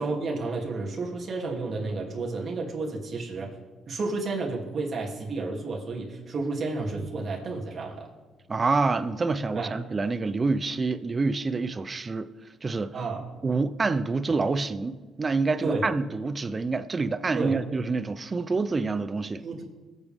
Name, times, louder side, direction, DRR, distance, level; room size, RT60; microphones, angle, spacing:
voice 1, 0.0-3.5 3.9-8.1 9.5-9.7 12.9-13.3 15.6-15.8 17.3-17.6 19.4-19.6, right 3 dB, 50° right, 2.9 m, -31 dB
Bowed string instrument, 6.8-9.2, equal, 80° left, 2.4 m, -50 dB
voice 2, 8.5-12.3 12.6-12.9 13.4-19.4, right 3 dB, 30° right, 0.7 m, -27 dB
21.5 x 8.2 x 3.6 m
cardioid pair, 90°, 0 cm